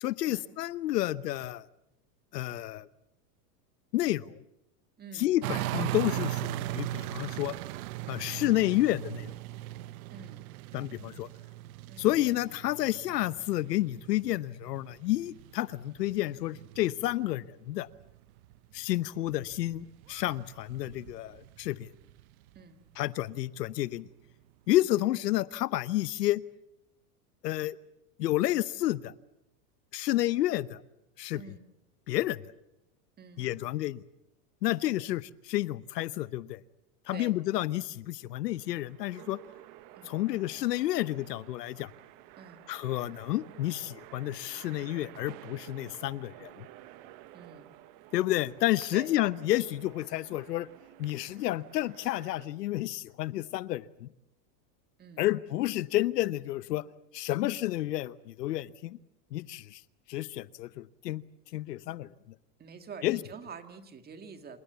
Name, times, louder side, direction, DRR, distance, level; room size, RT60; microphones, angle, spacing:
voice 1, 0.0-1.7 2.3-2.9 3.9-4.4 5.2-7.5 8.1-9.3 10.7-11.3 12.0-17.9 18.7-21.9 23.0-24.1 24.7-26.4 27.4-27.8 28.2-29.1 29.9-30.8 31.2-31.4 32.1-32.4 33.4-34.0 34.6-36.6 37.1-39.4 40.1-41.9 42.7-46.7 48.1-50.7 51.0-54.1 55.2-56.8 57.1-59.0 59.3-59.8 60.1-61.2 61.5-62.1 63.0-63.2, left 15 dB, 85° left, 18 dB, 1.0 m, -30 dB
voice 2, 5.0-5.3 10.1-10.4 11.9-12.1 22.6-22.8 31.3-31.7 33.2-33.5 35.0-35.1 37.1-37.3 40.0-40.2 42.4-42.6 47.3-47.7 48.9-49.1 55.0-55.3 62.6-64.6, right 5 dB, 20° right, 8 dB, 2.1 m, -47 dB
sound 1, 5.4-17.4 17.7-22.6 23.2-23.3, right 16 dB, 60° right, 0.9 m, -39 dB
sound 2, 38.1-52.5, right 14 dB, 45° right, 1.4 m, -52 dB
28.0 x 17.5 x 8.1 m, 0.89 s
supercardioid pair, 140°, 47 cm